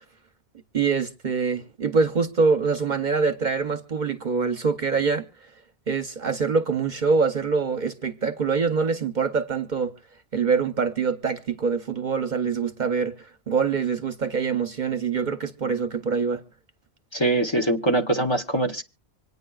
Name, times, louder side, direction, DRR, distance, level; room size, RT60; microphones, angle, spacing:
voice 1, 0.7-5.3 5.9-9.9 10.3-13.1 13.5-16.4, right 5 dB, 50° right, 0.8 m, -24 dB
voice 2, 17.1-18.8, right 2 dB, 25° left, 0.9 m, -23 dB
25.5 x 9.5 x 2.3 m
omnidirectional pair, 1.1 m